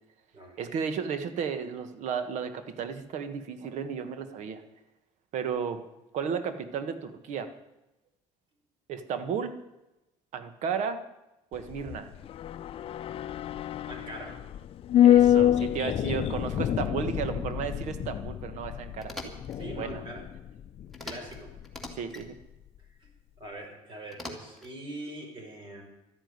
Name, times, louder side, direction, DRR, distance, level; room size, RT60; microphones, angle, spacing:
voice 1, 0.6-4.6 5.3-5.8 6.1-7.5 8.9-9.5 10.3-11.0 11.5-12.1 15.0-19.3 19.7-20.0 22.0-22.4, right 6 dB, 65° right, 10 dB, 1.5 m, -33 dB
sound 1, 11.5-22.0 22.3-22.4, left 11 dB, 45° left, 0.6 m, -27 dB
voice 2, 13.9-14.3 19.6-20.2 21.0-21.5 23.0-23.1 23.4-25.8, right 1 dB, 40° right, 2 dB, 5.3 m, -42 dB
sound 2, 19.0-19.6 20.9-21.4 21.6-22.3 24.1-24.7, left 1 dB, ahead, 2.5 m, -42 dB
12.5 x 10.5 x 9.6 m, 0.96 s
cardioid pair, 125°, 13 cm